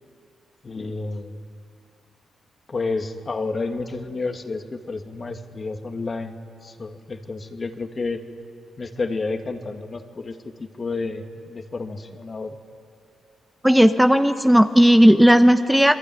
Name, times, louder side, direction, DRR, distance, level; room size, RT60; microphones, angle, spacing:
voice 1, 0.6-1.3 2.7-8.2 8.8-12.6, left 3 dB, 40° left, 5 dB, 2.4 m, -30 dB
voice 2, 13.6-15.9, equal, 5° right, 7 dB, 1.1 m, -14 dB
28.0 x 22.0 x 9.6 m, 2.4 s
supercardioid pair, 55°, 0 cm